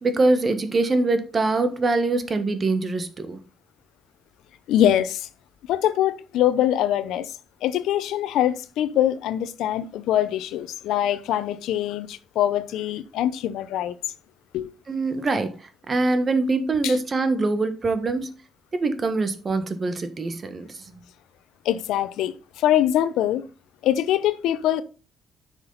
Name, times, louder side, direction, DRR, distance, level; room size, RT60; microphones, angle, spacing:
voice 1, 0.0-3.4 14.9-15.6 15.9-18.3 18.7-20.7, right 3 dB, 35° right, 1.4 m, -23 dB
voice 2, 4.7-5.3 5.7-14.0 14.5-14.7 16.8-17.0 21.6-23.5 23.8-24.8, left 11 dB, 85° left, 0.7 m, -23 dB
9.9 x 6.1 x 4.0 m
cardioid pair, 90°, 0 cm